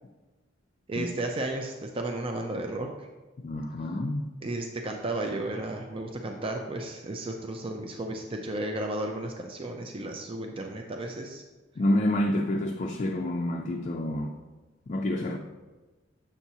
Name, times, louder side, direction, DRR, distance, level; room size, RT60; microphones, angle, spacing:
voice 1, 0.9-3.1 4.4-11.4, right 2 dB, 30° right, 2 dB, 0.4 m, -33 dB
voice 2, 3.4-4.3 11.8-14.4 14.9-15.4, left 1 dB, 40° left, 2 dB, 0.4 m, -28 dB
7.0 x 5.9 x 2.8 m, 1.2 s
head